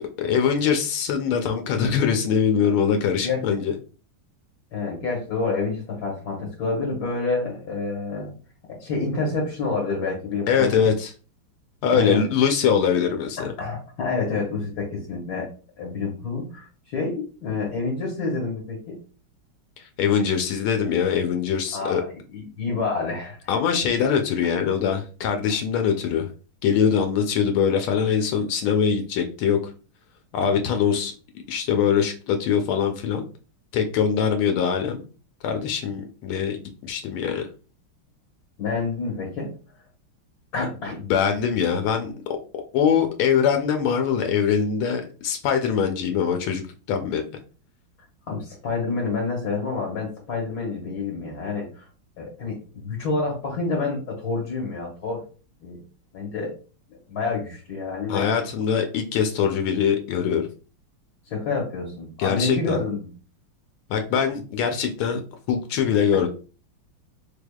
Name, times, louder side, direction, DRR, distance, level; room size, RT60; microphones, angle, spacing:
voice 1, 0.2-3.7 10.5-11.1 11.8-13.4 20.0-22.0 23.5-26.3 26.6-29.6 30.3-31.1 31.5-33.2 33.7-35.0 35.4-37.5 41.1-42.1 42.7-46.6 46.9-47.2 58.1-60.5 62.2-62.8 63.9-65.2 65.5-66.3, left 7 dB, 90° left, 5 dB, 1.4 m, -22 dB
voice 2, 3.2-3.6 4.7-8.3 8.7-10.9 11.9-12.2 13.4-15.5 15.8-19.0 21.7-23.4 38.6-39.5 40.5-41.0 48.3-51.8 52.2-55.2 55.6-55.8 56.1-56.5 57.1-58.3 61.3-63.1 66.1-66.3, left 4 dB, 55° left, -1 dB, 1.2 m, -28 dB
3.5 x 3.4 x 2.2 m, 0.36 s
omnidirectional pair, 2.3 m